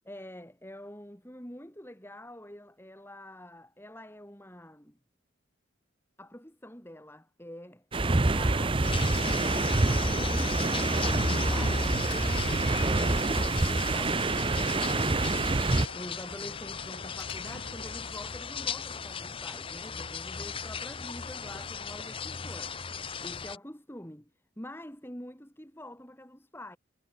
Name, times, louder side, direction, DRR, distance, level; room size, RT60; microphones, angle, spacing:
voice 1, 0.0-5.0 6.2-8.8 9.4-15.2 15.9-22.8 23.2-24.3 24.6-26.8, left 1 dB, 10° left, 5.2 m, -46 dB
sound 1, 7.9-15.9, right 2 dB, 25° right, 0.7 m, -27 dB
sound 2, 8.8-23.6, left 4 dB, 25° left, 0.7 m, -36 dB
Door, 10.3-18.4, left 5 dB, 65° left, 6.5 m, -47 dB
head